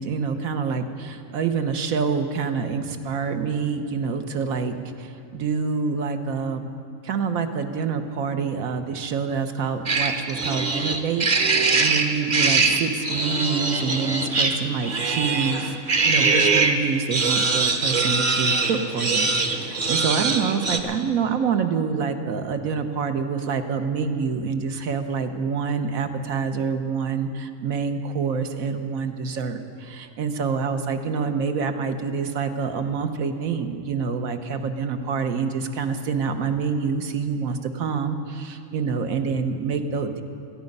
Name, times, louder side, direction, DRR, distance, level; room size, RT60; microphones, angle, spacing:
voice 1, 0.0-6.7 7.0-15.8 16.0-40.2, right 5 dB, 75° right, 7 dB, 1.3 m, -27 dB
sound 1, 9.9-16.8 17.1-20.8, right 4 dB, 35° right, 0.9 m, -22 dB
18.0 x 14.0 x 5.4 m, 2.5 s
omnidirectional pair, 1.5 m